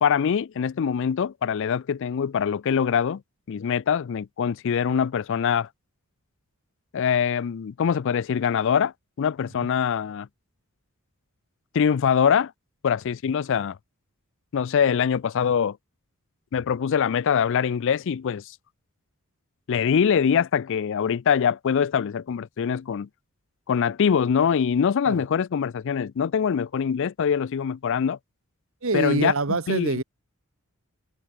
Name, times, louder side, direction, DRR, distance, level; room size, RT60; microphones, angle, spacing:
voice 1, 0.0-3.2 3.5-5.7 6.9-10.3 11.7-12.5 12.8-13.8 14.5-15.8 16.5-18.4 19.7-23.1 23.7-28.2 28.9-30.0, left 7 dB, 60° left, 0.4 m, -23 dB
voice 2, 28.8-30.0, right 3 dB, 65° right, 1.2 m, -25 dB
head